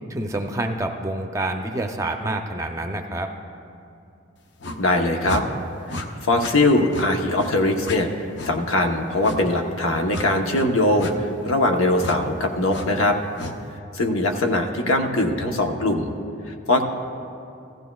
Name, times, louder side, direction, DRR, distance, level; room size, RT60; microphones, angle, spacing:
voice 1, 0.1-3.3, right 1 dB, 15° right, 4 dB, 0.5 m, -27 dB
sound 1, 4.6-4.8 5.2-5.4 5.9-6.1 6.4-6.6 6.9-7.1 7.4-7.5 7.8-8.0 8.4-8.5 9.2-9.4 10.1-10.3 11.0-11.1 12.0-12.2 12.7-12.9 13.4-13.6, left 1 dB, 55° left, 0.7 m, -32 dB
voice 2, 4.8-5.4 5.9-13.2 13.9-16.1 16.7-16.8, left 2 dB, 80° left, 3 dB, 1.0 m, -21 dB
15.5 x 14.5 x 2.3 m, 2.6 s
head